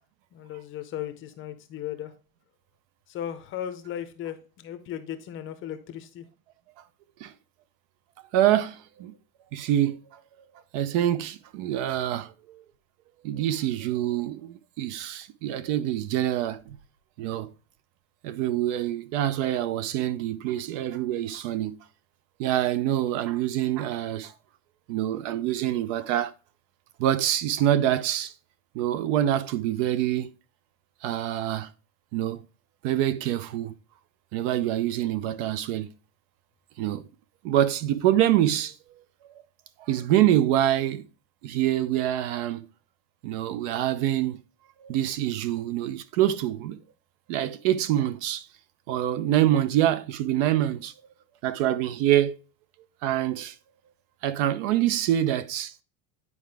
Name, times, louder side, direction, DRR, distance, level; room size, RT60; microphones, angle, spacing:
voice 1, 0.3-2.1 3.1-6.3, left 10 dB, 30° left, 0.6 m, -36 dB
voice 2, 8.3-9.1 9.5-10.0 10.7-12.6 13.2-16.8 17.2-17.5 18.2-21.8 22.4-24.3 24.9-26.3 27.0-28.3 28.7-30.3 31.0-31.7 32.1-32.4 32.8-33.7 34.3-35.9 36.8-37.1 37.4-38.7 39.8-41.0 41.4-42.7 43.2-44.4 44.8-46.8 47.3-48.4 48.9-50.9 51.4-52.4 53.0-53.5 54.2-55.8, right 12 dB, 55° right, 0.7 m, -25 dB
9.7 x 4.7 x 3.4 m
cardioid pair, 165°, 44 cm